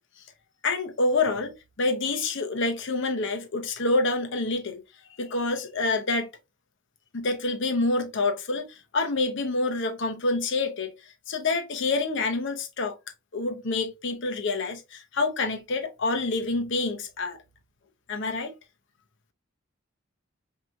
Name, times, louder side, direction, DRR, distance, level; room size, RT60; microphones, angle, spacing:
voice 1, 0.6-4.8 5.2-6.3 7.1-10.9 11.3-13.0 13.3-17.4 18.1-18.5, left 3 dB, 60° left, 0.7 m, -27 dB
4.5 x 2.9 x 2.5 m
head